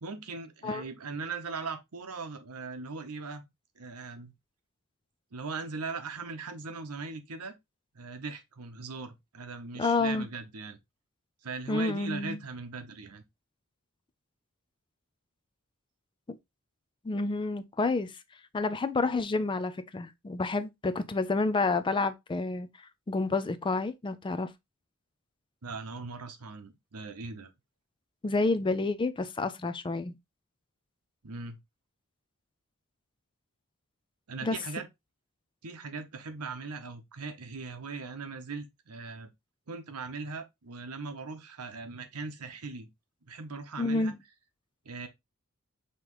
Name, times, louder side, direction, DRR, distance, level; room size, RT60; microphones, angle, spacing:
voice 1, 0.0-3.5 3.8-4.3 5.3-7.5 7.9-10.8 11.4-13.2 25.6-27.5 31.2-31.6 34.3-34.9 35.6-39.3 39.7-42.9 43.3-44.1 44.8-45.1, right 4 dB, 85° right, 0.9 m, -39 dB
voice 2, 9.8-10.3 11.7-12.4 16.3-16.4 17.0-18.1 18.5-22.7 23.1-24.5 28.2-30.1 34.4-34.6 43.8-44.2, left 3 dB, 20° left, 0.4 m, -29 dB
5.6 x 3.0 x 3.0 m
head